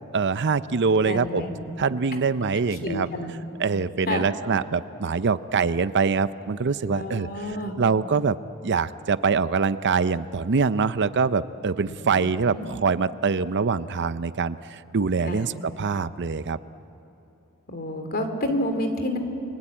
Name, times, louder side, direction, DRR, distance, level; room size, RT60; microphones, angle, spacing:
voice 1, 0.1-1.4 1.8-3.1 3.6-7.3 7.8-8.4 8.6-16.6, right 5 dB, 55° right, 14 dB, 0.6 m, -24 dB
voice 2, 1.0-1.7 2.1-2.2 2.8-3.3 4.1-4.3 6.8-7.8 11.9-12.7 15.2-15.6 17.7-19.2, left 1 dB, 45° left, 6 dB, 2.9 m, -30 dB
29.5 x 23.0 x 8.6 m, 2.9 s
head